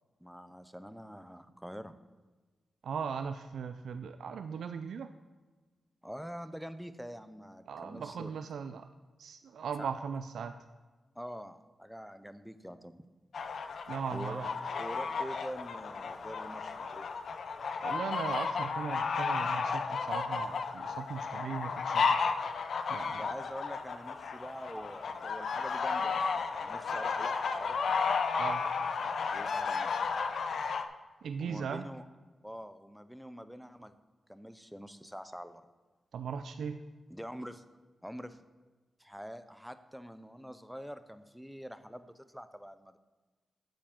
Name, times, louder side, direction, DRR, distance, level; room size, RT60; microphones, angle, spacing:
voice 1, 0.2-2.0 6.0-8.3 9.8-9.9 11.2-13.0 14.1-17.1 23.2-28.0 29.3-29.9 31.4-32.0 32.4-33.9 34.3-35.6 37.1-37.6 38.0-38.4 39.0-43.0, equal, ahead, 11 dB, 0.5 m, -45 dB
voice 2, 2.8-5.1 7.7-8.8 9.2-10.5 13.9-14.5 17.8-22.2 22.9-23.2 28.4-28.6 31.2-31.9 36.1-36.8, right 6 dB, 85° right, 8 dB, 0.4 m, -38 dB
sound 1, 13.3-30.8, left 5 dB, 70° left, 0.5 m, -33 dB
8.8 x 7.4 x 3.7 m, 1.3 s
cardioid pair, 90°, 0 cm